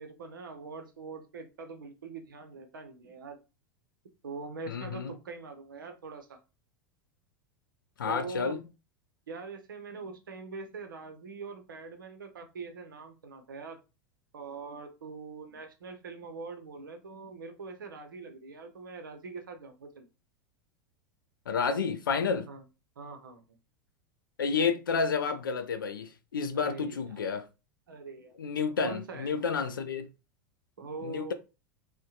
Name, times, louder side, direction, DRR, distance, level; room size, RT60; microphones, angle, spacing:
voice 1, 0.0-3.4 4.2-6.4 8.0-8.6 9.3-13.8 14.3-20.0 22.5-22.6 23.0-23.4 26.5-27.2 27.9-28.3 28.8-29.3 30.8-31.3, right 4 dB, 75° right, 0.6 m, -43 dB
voice 2, 4.7-5.1 8.0-8.6 21.5-22.5 24.4-27.5 28.4-30.1 31.0-31.3, left 5 dB, 75° left, 0.4 m, -30 dB
2.7 x 2.1 x 2.3 m
figure-of-eight pair, 85°, 11 cm